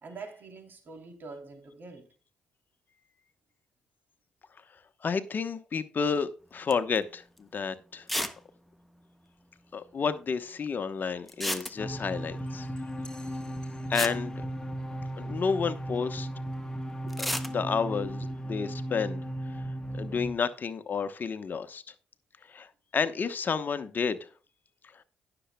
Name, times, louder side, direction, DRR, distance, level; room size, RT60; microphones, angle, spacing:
voice 1, 0.0-2.1 18.0-18.1, right 4 dB, 50° right, 3.1 m, -45 dB
voice 2, 5.0-8.1 9.7-12.7 13.9-14.4 15.2-16.3 17.2-17.3 17.5-18.2 18.5-19.2 19.5-19.6 19.9-21.8 22.5-24.2 24.9-25.0, left 5 dB, 50° left, 1.0 m, -31 dB
sound 1, 6.7-7.0 7.4-7.5 8.1-8.4 8.7-8.8 8.9-9.0 11.3-12.1 13.5-13.6 13.9-15.1 17.1-17.5, equal, ahead, 1.3 m, -33 dB
sound 2, 11.8-20.3, right 1 dB, 15° left, 1.5 m, -36 dB
18.0 x 7.0 x 2.2 m
supercardioid pair, 55°, 4 cm